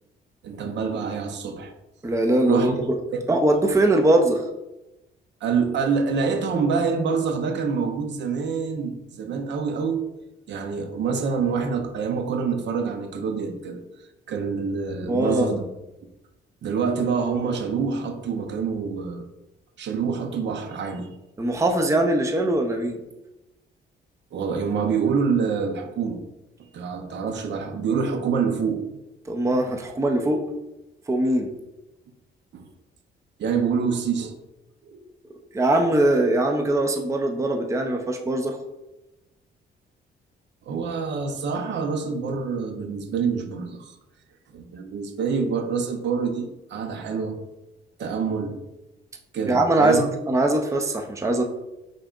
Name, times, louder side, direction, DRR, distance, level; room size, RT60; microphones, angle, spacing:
voice 1, 0.4-1.7 2.5-2.8 3.1-3.2 5.4-10.0 10.5-13.8 14.3-15.6 16.6-19.2 19.8-21.1 24.3-26.2 26.6-28.8 32.5-32.6 33.4-34.3 34.8-35.0 40.7-43.9 44.5-47.4 48.0-48.6 49.3-50.1, right 5 dB, 65° right, 6 dB, 0.7 m, -26 dB
voice 2, 2.0-2.9 3.3-4.4 15.1-15.6 21.4-23.0 29.3-30.4 31.1-31.5 35.5-38.6 49.5-51.5, right 1 dB, 15° right, 5 dB, 0.5 m, -21 dB
5.4 x 3.8 x 2.4 m, 0.97 s
cardioid pair, 90°, 20 cm